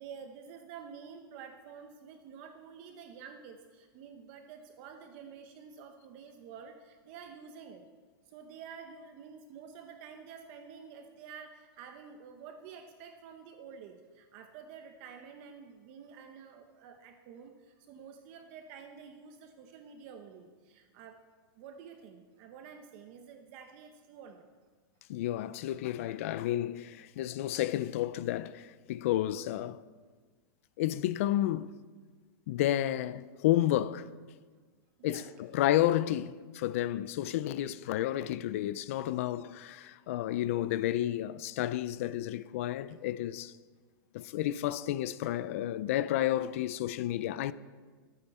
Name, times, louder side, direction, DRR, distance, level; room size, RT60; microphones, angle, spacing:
voice 1, 0.0-7.8 8.3-21.2 21.6-24.4 35.0-35.3, right 6 dB, 30° right, 0.8 m, -49 dB
voice 2, 25.1-29.8 30.8-31.7 32.5-34.1 35.0-43.5 44.1-47.5, left 13 dB, 35° left, 0.4 m, -31 dB
22.5 x 9.0 x 4.3 m
supercardioid pair, 175°, 12 cm